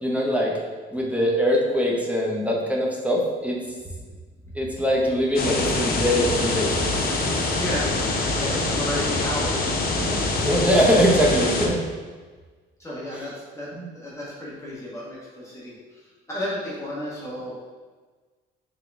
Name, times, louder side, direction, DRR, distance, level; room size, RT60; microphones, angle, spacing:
voice 1, 0.0-0.5 0.9-3.6 4.5-6.8 10.4-11.8 13.1-13.3 13.7-13.9, equal, 5° right, -3 dB, 0.8 m, -22 dB
sound 1, 5.4-11.7, left 2 dB, 50° left, 0.8 m, -24 dB
voice 2, 7.5-9.5 9.8-10.3 12.8-13.7 13.9-15.7 16.3-17.5, left 1 dB, 15° left, -7 dB, 1.3 m, -33 dB
3.8 x 3.6 x 3.5 m, 1.4 s
cardioid pair, 90°, 20 cm